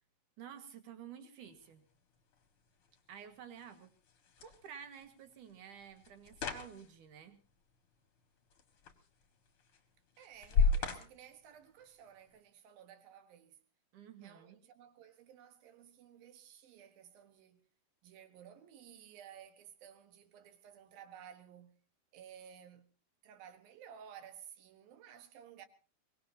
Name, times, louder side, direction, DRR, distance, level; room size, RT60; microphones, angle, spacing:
voice 1, 0.4-1.9 3.1-3.9 4.4-7.4 13.9-14.6, right 8 dB, 65° right, 3.0 m, -51 dB
sound 1, 1.4-12.4, left 4 dB, 45° left, 2.0 m, -39 dB
voice 2, 10.2-13.6 14.2-17.7 18.0-21.8 22.1-22.9 23.2-25.7, right 9 dB, 80° right, 3.1 m, -55 dB
23.0 x 19.5 x 2.8 m
omnidirectional pair, 4.1 m